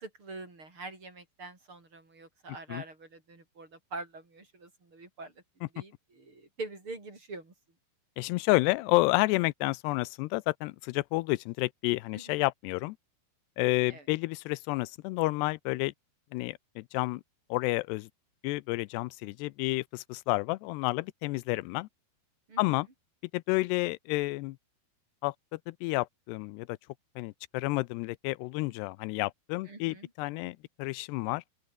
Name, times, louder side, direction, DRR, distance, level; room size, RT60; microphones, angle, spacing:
voice 1, 0.0-5.3 5.7-7.5 12.1-12.4 13.9-14.1 22.5-22.6 29.7-30.1, right 3 dB, 30° right, 5.8 m, -44 dB
voice 2, 8.2-13.0 13.6-15.9 16.3-17.2 17.5-18.1 18.4-21.9 22.6-22.9 23.3-24.6 25.2-26.8 27.2-31.4, left 22 dB, 90° left, 2.7 m, -30 dB
omnidirectional pair, 4.7 m